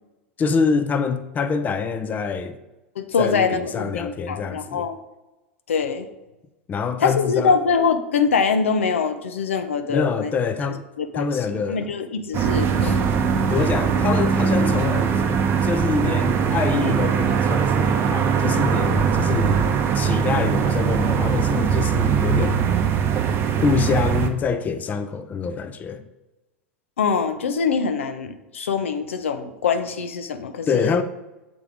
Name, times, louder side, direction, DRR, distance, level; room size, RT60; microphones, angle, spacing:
voice 1, 0.4-2.6 3.2-4.9 6.7-7.6 9.9-10.8 11.1-11.8 13.5-15.2 15.6-19.7 19.9-22.6 23.6-26.0 30.7-31.0, left 5 dB, 25° left, 0.5 m, -25 dB
voice 2, 3.0-5.0 5.7-6.1 7.0-10.3 11.0-13.0 27.0-31.0, left 5 dB, 80° left, 0.6 m, -24 dB
sound 1, 12.3-24.3, right 6 dB, 35° right, 0.7 m, -21 dB
6.9 x 3.7 x 4.8 m
hypercardioid pair, 95°, 7 cm